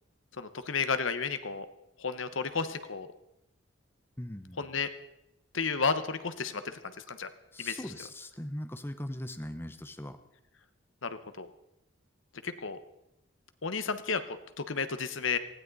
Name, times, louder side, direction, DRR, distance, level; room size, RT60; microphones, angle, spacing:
voice 1, 0.4-1.7 2.0-3.1 4.6-4.9 5.5-7.3 7.6-7.8 11.0-11.5 12.4-12.8 13.6-15.4, left 5 dB, 75° left, 10 dB, 1.1 m, -32 dB
voice 2, 4.2-4.7 7.5-10.2, left 1 dB, 10° left, 8 dB, 1.0 m, -40 dB
19.0 x 15.5 x 4.1 m, 0.86 s
head